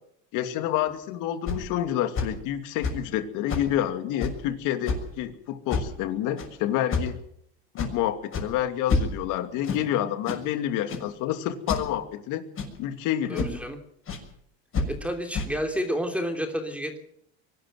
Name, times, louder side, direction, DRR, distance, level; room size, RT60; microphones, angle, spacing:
voice 1, 0.3-7.2 7.7-12.4 12.8-13.5, left 11 dB, 65° left, 9 dB, 2.6 m, -28 dB
sound 1, 0.9-1.0 1.5-1.6 2.1-2.3 2.8-3.1 3.5-3.7 4.2-4.4 4.8-5.1 5.7-6.0 6.4-6.5 6.9-7.2 7.8-7.9 8.3-8.5 8.9-9.3 9.6-9.8 10.2-10.4 10.9-11.1 11.7-11.9 12.6-12.8 13.3-13.6 14.1-14.2 14.7-14.9 15.3-15.5, left 4 dB, 40° left, 6.6 m, -28 dB
voice 2, 13.3-13.8 14.9-17.0, equal, 5° right, 5 dB, 3.1 m, -30 dB
23.0 x 12.5 x 9.3 m, 0.72 s
supercardioid pair, 115°, 33 cm